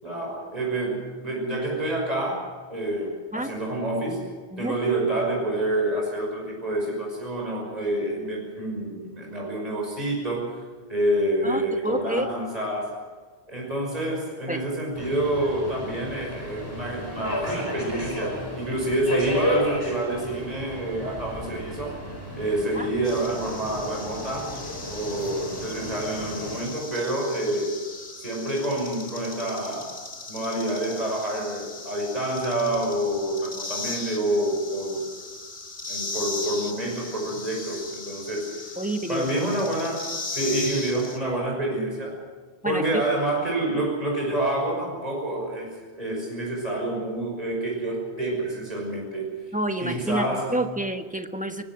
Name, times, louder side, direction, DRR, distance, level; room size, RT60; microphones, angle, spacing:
voice 1, 0.0-4.2 4.6-10.6 10.9-12.9 13.5-22.0 22.4-24.5 24.9-27.8 28.2-30.0 30.3-35.1 35.9-38.7 39.1-42.2 42.6-49.4 49.8-50.6, right 1 dB, 35° right, -1 dB, 6.1 m, -28 dB
voice 2, 11.4-12.3 14.5-14.6 22.7-22.9 38.8-39.5 42.6-43.0 49.5-51.6, right 1 dB, 5° right, 6 dB, 1.3 m, -29 dB
Subway metro underground, 15.0-26.6, equal, 20° left, 5.5 m, -33 dB
sound 1, 23.0-41.2, left 3 dB, 85° left, 2.4 m, -37 dB
23.5 x 19.5 x 6.2 m, 1.5 s
omnidirectional pair, 1.1 m